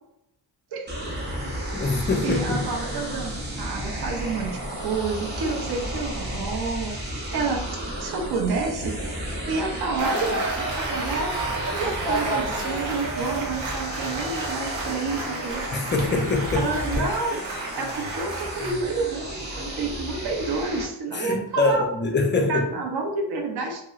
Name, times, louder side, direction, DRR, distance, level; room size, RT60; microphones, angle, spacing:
sound 1, 0.9-20.8, right 1 dB, 25° right, 0.6 m, -33 dB
voice 1, 1.7-2.7 15.7-16.7 17.0-17.1 21.1-22.7, left 3 dB, 25° left, 3 dB, 0.3 m, -24 dB
voice 2, 2.2-9.2 9.4-11.3 11.8-15.6 16.6-17.4 17.8-21.9 22.5-23.8, right 4 dB, 60° right, 1 dB, 0.7 m, -29 dB
sound 2, 10.0-18.7, right 2 dB, 85° right, 0.8 m, -31 dB
3.0 x 2.9 x 2.3 m, 0.79 s
wide cardioid pair, 145°, 46 cm